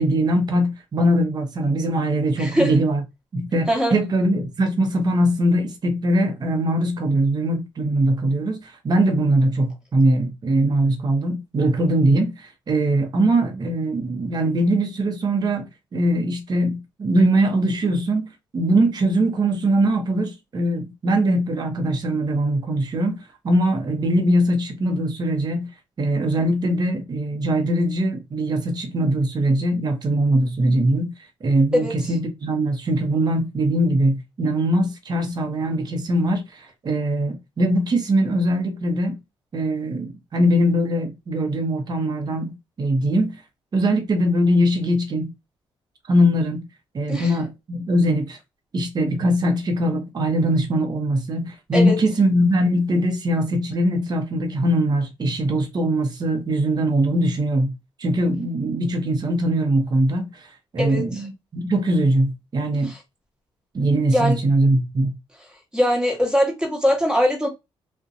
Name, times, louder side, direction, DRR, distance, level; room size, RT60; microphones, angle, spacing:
voice 1, 0.0-3.0 3.3-18.3 18.5-25.7 26.0-31.1 31.4-39.2 39.5-43.4 43.7-45.3 46.1-46.6 46.9-48.4 48.7-57.7 58.0-62.9 63.7-65.2, right 1 dB, 40° right, 0.7 m, -21 dB
voice 2, 2.4-2.7 3.7-4.0 31.7-31.9 47.1-47.3 51.7-52.0 60.8-61.0 62.8-63.0 64.1-64.4 65.7-67.5, equal, 10° right, 1.1 m, -21 dB
2.5 x 2.1 x 2.5 m
cardioid pair, 75°, 11 cm